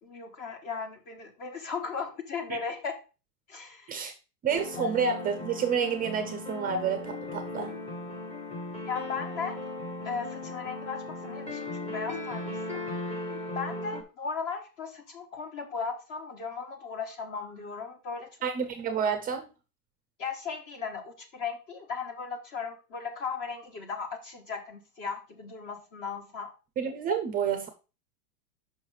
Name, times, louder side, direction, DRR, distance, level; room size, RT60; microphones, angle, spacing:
voice 1, 0.0-3.0 3.5-3.9 4.8-4.9 8.9-9.6 10.0-12.8 13.5-18.3 20.2-26.5, left 5 dB, 40° left, 1.4 m, -37 dB
voice 2, 4.4-7.7 18.4-19.5 26.8-27.7, right 6 dB, 20° right, 0.5 m, -29 dB
sound 1, 4.5-14.0, left 2 dB, 15° left, 0.9 m, -37 dB
5.7 x 4.9 x 4.8 m
supercardioid pair, 140°, 48 cm